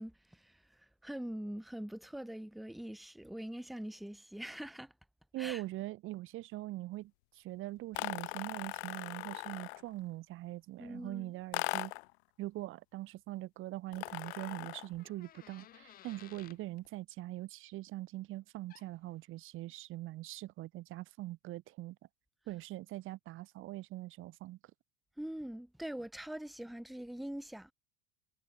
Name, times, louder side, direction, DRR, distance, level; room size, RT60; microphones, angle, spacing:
voice 1, 0.0-4.9 5.4-5.6 10.8-11.3 25.2-27.7, right 1 dB, ahead, 0.3 m, -43 dB
voice 2, 5.3-11.9 12.4-22.0 22.5-24.6, right 17 dB, 40° right, 0.9 m, -42 dB
sound 1, 7.9-9.9 11.5-12.1 13.9-15.0, left 25 dB, 75° left, 0.6 m, -39 dB
sound 2, 14.1-16.6 18.7-18.9, left 11 dB, 30° left, 0.8 m, -57 dB
supercardioid pair, 135°, 32 cm